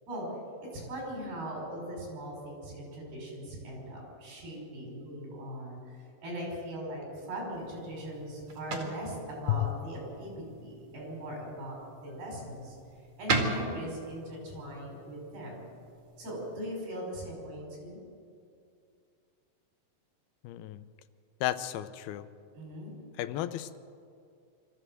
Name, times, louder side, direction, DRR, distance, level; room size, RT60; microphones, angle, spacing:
voice 1, 0.6-6.0 6.2-10.3 10.6-12.8 13.2-15.7 16.2-18.0 22.6-22.9, equal, 85° right, -1 dB, 7.5 m, -40 dB
sound 1, 7.5-16.7, right 3 dB, 40° right, 2.6 m, -39 dB
voice 2, 20.4-20.8 21.4-22.3 23.2-23.8, left 14 dB, 85° left, 12 dB, 2.7 m, -32 dB
24.0 x 14.0 x 7.8 m, 2.4 s
omnidirectional pair, 4.3 m